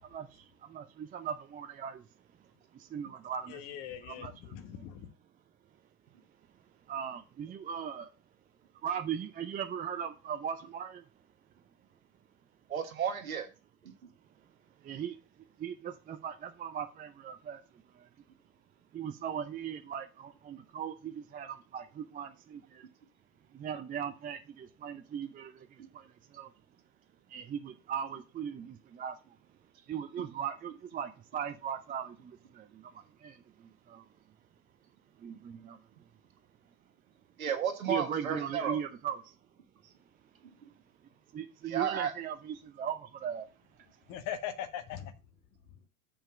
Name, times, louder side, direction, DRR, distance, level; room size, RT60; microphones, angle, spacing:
voice 1, 0.0-2.1 2.9-4.9 6.9-8.1 8.8-11.0 14.8-15.2 15.6-17.6 17.9-18.1 18.9-22.9 23.5-26.5 27.3-29.2 29.9-34.1 35.2-35.8 37.9-39.3 41.3-43.5, right 8 dB, 20° right, 0.7 m, -39 dB
voice 2, 3.5-5.1 44.1-45.1, left 10 dB, 45° left, 1.4 m, -40 dB
voice 3, 12.7-13.5 13.8-13.9 37.4-38.8 41.7-42.1, right 7 dB, 75° right, 1.8 m, -32 dB
7.3 x 5.2 x 5.8 m
figure-of-eight pair, 85°, 41 cm